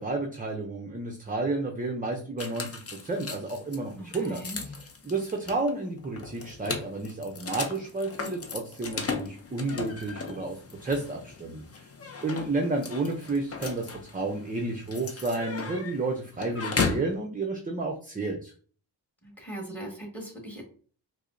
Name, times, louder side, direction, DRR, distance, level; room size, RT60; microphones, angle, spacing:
voice 1, 0.0-11.9 12.2-18.5, right 3 dB, 20° right, 2 dB, 0.5 m, -31 dB
sound 1, 2.4-17.1, left 4 dB, 30° left, 0.6 m, -36 dB
voice 2, 4.0-4.6 19.2-20.6, right 1 dB, 5° left, 0 dB, 1.5 m, -40 dB
4.7 x 2.0 x 2.5 m, 0.43 s
cardioid pair, 70°, 46 cm